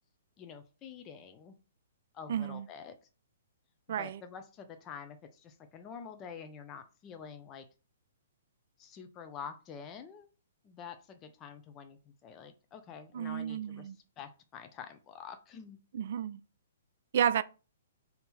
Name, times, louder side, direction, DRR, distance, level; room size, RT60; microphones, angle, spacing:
voice 1, 0.4-1.6 2.1-3.0 4.0-7.7 8.8-10.3 10.6-15.8, left 6 dB, 25° left, 0.5 m, -47 dB
voice 2, 2.3-2.7 3.9-4.2 13.1-14.0 15.9-16.4 17.1-17.4, right 9 dB, 55° right, 0.3 m, -31 dB
3.6 x 2.8 x 4.0 m
hypercardioid pair, 125°, 0 cm